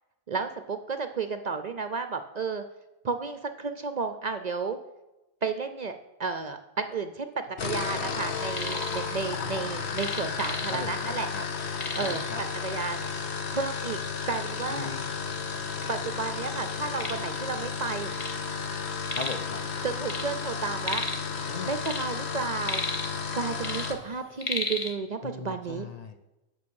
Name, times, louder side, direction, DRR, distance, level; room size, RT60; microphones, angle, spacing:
voice 1, 0.3-2.6 3.0-4.8 5.4-11.3 11.9-13.1 13.5-14.0 14.3-14.9 15.9-18.1 19.8-21.0 21.7-22.8 23.3-25.9, right 4 dB, 50° right, 8 dB, 0.6 m, -32 dB
sound 1, 7.5-24.0, left 5 dB, 75° left, 1.2 m, -33 dB
sound 2, 8.3-9.0 9.3-11.1 11.4-11.5 11.8-12.4 13.2-13.3 13.8-13.9 14.7-14.8 15.0-15.9 16.4-18.4 18.7-19.5 19.8-21.3 21.7-23.3 23.6-24.9, left 2 dB, 30° left, 1.1 m, -34 dB
voice 2, 10.7-11.4 12.0-12.4 14.7-15.4 19.1-19.6 21.5-21.7 25.2-26.2, left 4 dB, 45° left, 7 dB, 0.6 m, -38 dB
8.5 x 6.3 x 6.3 m, 1.0 s
omnidirectional pair, 1.1 m